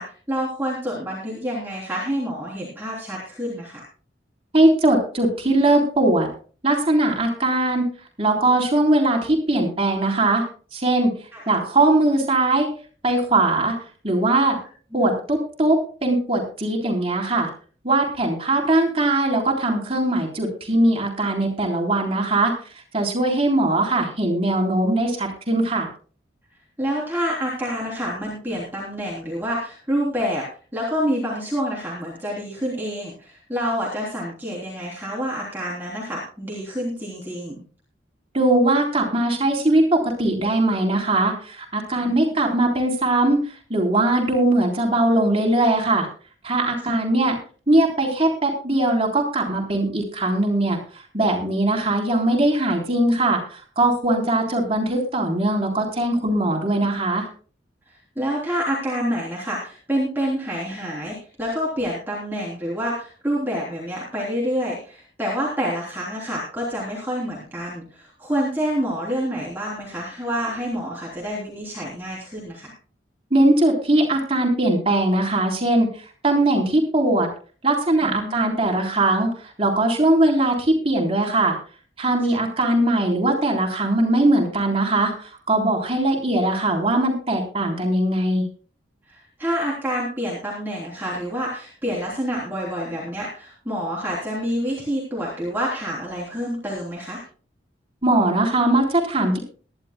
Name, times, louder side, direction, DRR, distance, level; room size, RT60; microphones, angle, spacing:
voice 1, 0.0-3.8 11.3-11.4 14.9-15.2 26.8-30.4 30.7-37.6 42.0-42.2 46.9-47.0 57.9-72.7 78.0-78.5 82.3-82.4 89.1-97.2, equal, 10° right, -5 dB, 3.4 m, -28 dB
voice 2, 4.5-6.3 6.6-7.8 8.2-10.4 10.7-11.1 11.5-12.7 13.0-13.8 14.0-14.6 14.9-17.5 17.8-22.5 22.9-25.9 38.3-43.4 43.7-46.1 46.4-47.4 47.7-50.8 51.1-57.3 73.3-75.9 76.2-77.3 77.6-81.6 82.0-88.5 98.0-99.4, right 2 dB, 30° right, 0 dB, 3.5 m, -20 dB
22.0 x 11.5 x 2.2 m, 0.40 s
head